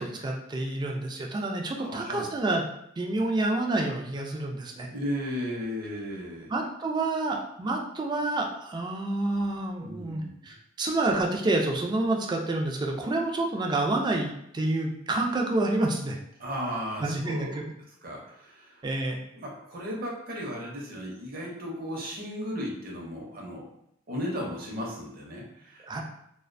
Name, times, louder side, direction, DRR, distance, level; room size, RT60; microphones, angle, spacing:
voice 1, 0.0-2.6 3.0-4.9 6.5-16.2 17.0-17.6 18.8-19.2 25.9-26.0, right 2 dB, 20° right, 1 dB, 0.3 m, -28 dB
voice 2, 1.8-2.3 4.9-6.5 9.8-10.5 16.4-17.6 18.0-18.9 19.3-23.6 24.1-26.0, equal, 50° right, -2 dB, 0.7 m, -35 dB
2.4 x 2.1 x 2.5 m, 0.76 s
head